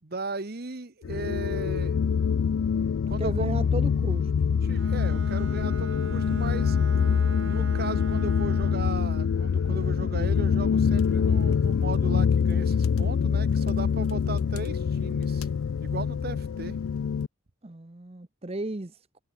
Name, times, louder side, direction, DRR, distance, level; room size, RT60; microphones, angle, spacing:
voice 1, 0.0-2.0 3.1-3.5 4.6-6.8 7.4-15.5 15.8-16.8, right 3 dB, 45° right, 1.1 m, -37 dB
sound 1, 1.0-17.3, left 6 dB, 80° left, 0.4 m, -25 dB
voice 2, 3.2-4.3 17.6-19.1, right 2 dB, 30° right, 0.8 m, -34 dB
Bowed string instrument, 4.7-9.0, right 3 dB, 65° right, 2.8 m, -42 dB
head